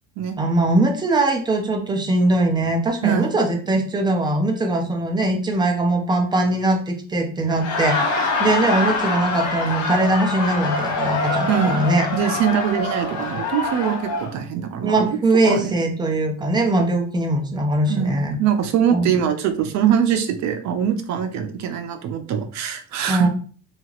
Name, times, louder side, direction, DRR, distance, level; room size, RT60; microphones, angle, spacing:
voice 1, 0.4-12.1 14.8-18.4 18.9-19.1 23.1-23.3, right 2 dB, 15° right, 3 dB, 0.5 m, -21 dB
voice 2, 3.0-3.4 11.5-11.8 12.1-15.2 15.4-15.7 17.9-23.3, right 8 dB, 65° right, 7 dB, 0.6 m, -22 dB
Laughter, 7.5-14.3, left 3 dB, 80° left, 0.9 m, -25 dB
2.8 x 2.4 x 2.8 m, 0.41 s
cardioid pair, 135°, 31 cm